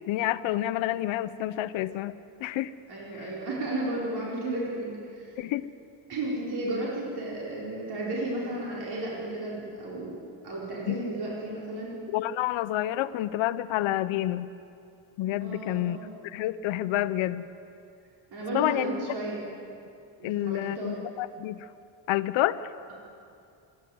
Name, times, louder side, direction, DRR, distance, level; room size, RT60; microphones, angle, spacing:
voice 1, 0.1-2.2 2.4-2.7 3.1-3.3 5.4-5.7 10.9-11.0 12.1-14.5 15.2-16.0 16.3-17.5 18.5-18.9 20.2-21.7 22.1-22.6, left 14 dB, 80° left, 12 dB, 0.8 m, -28 dB
voice 2, 2.9-5.4 6.1-12.0 15.4-16.2 18.3-19.5 20.2-21.0, right 2 dB, 55° right, -5 dB, 4.8 m, -33 dB
26.0 x 11.0 x 9.4 m, 2.5 s
cardioid pair, 100°, 46 cm